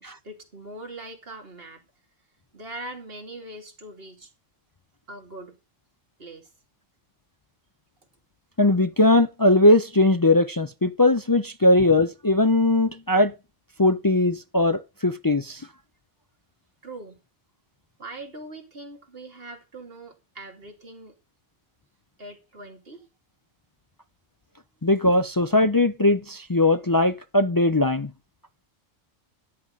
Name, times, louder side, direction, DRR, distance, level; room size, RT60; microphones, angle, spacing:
voice 1, 0.0-1.8 2.5-4.3 5.1-5.6 6.2-6.5 16.8-17.2 18.0-21.1 22.2-23.1, right 2 dB, 50° right, 2.9 m, -41 dB
voice 2, 8.6-13.3 13.8-15.6 24.8-28.1, left 2 dB, 35° left, 0.3 m, -20 dB
13.5 x 9.7 x 4.0 m
omnidirectional pair, 1.3 m